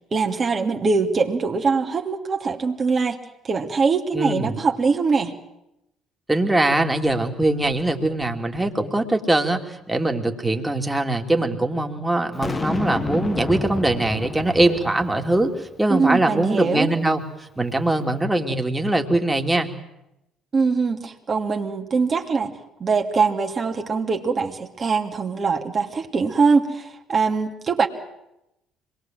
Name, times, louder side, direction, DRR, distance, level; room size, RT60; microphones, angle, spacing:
voice 1, 0.1-3.2 3.4-5.4 15.9-16.9 20.5-22.5 22.8-27.9, right 4 dB, 40° right, 2 dB, 2.6 m, -22 dB
voice 2, 4.1-4.5 6.3-19.7, right 2 dB, 10° right, 3 dB, 3.0 m, -22 dB
Boom, 12.4-15.7, left 3 dB, 30° left, 1.8 m, -30 dB
25.5 x 21.0 x 7.8 m, 0.87 s
hypercardioid pair, 55°, 0 cm